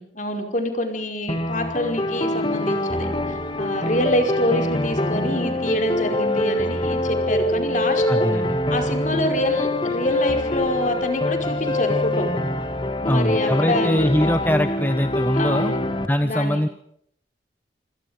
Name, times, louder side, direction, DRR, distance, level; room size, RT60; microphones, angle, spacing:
voice 1, 0.0-8.3 8.7-12.3 13.0-14.6 15.4-15.8 16.2-16.7, left 1 dB, 40° left, 5 dB, 5.2 m, -26 dB
sound 1, 1.3-16.1, left 1 dB, 25° left, 2.2 m, -24 dB
voice 2, 8.1-8.6 13.1-15.7 16.1-16.7, equal, 10° left, 8 dB, 1.1 m, -22 dB
28.0 x 26.5 x 5.2 m, 0.68 s
head